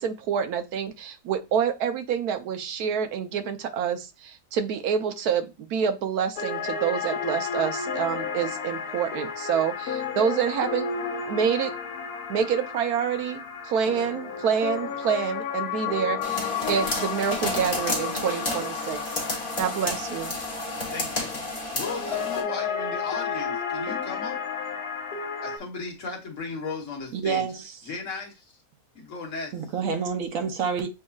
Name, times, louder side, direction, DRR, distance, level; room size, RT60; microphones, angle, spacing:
voice 1, 0.0-10.9 11.3-11.7 12.3-19.0 19.6-20.4, right 7 dB, 85° right, 1.2 m, -27 dB
sound 1, 6.4-25.6, left 6 dB, 80° left, 1.4 m, -32 dB
sound 2, 16.2-22.4, left 2 dB, 35° left, 1.5 m, -31 dB
Wind instrument woodwind instrument, 16.5-20.1, right 7 dB, 35° right, 0.7 m, -53 dB
voice 2, 20.9-21.3 21.7-24.4 25.4-27.4 27.8-28.4 28.9-29.5, left 4 dB, 55° left, 1.5 m, -35 dB
voice 3, 27.1-27.6 29.5-30.9, right 6 dB, 65° right, 1.0 m, -28 dB
7.2 x 2.7 x 2.3 m
omnidirectional pair, 1.6 m